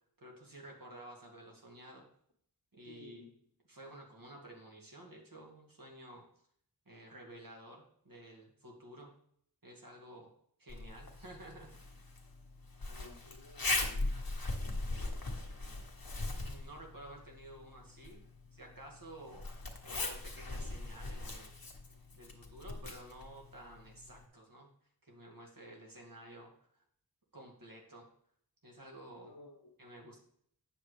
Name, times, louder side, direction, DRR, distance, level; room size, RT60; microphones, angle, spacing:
voice 1, 0.2-2.1 2.7-3.3 3.7-6.2 6.9-9.1 9.6-10.3 10.6-11.7 16.3-18.2 18.5-19.5 19.8-21.6 22.1-24.7 25.0-26.8 27.3-28.1 28.6-29.3 29.8-30.2, right 1 dB, 60° right, 0 dB, 2.0 m, -52 dB
voice 2, 2.8-3.4 12.9-14.1 29.2-29.7, left 3 dB, 85° left, 4 dB, 1.2 m, -55 dB
Zipper (clothing), 10.7-24.2, left 2 dB, 60° left, 1.2 m, -40 dB
8.8 x 7.0 x 3.3 m, 0.66 s
wide cardioid pair, 50°, 39 cm